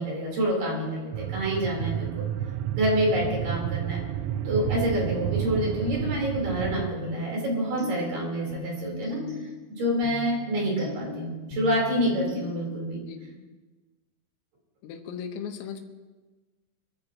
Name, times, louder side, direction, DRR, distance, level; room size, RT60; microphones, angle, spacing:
voice 1, 0.0-2.3 2.7-4.0 4.4-9.2 9.7-13.0, equal, 45° right, -2 dB, 5.0 m, -27 dB
sound 1, 1.1-6.9, right 11 dB, 85° right, 3.4 m, -31 dB
sound 2, 7.0-13.0, left 4 dB, 35° left, 6.5 m, -40 dB
voice 2, 13.0-13.5 14.8-15.9, left 7 dB, 85° left, 5 dB, 3.8 m, -38 dB
25.0 x 14.5 x 2.9 m, 1.3 s
omnidirectional pair, 5.9 m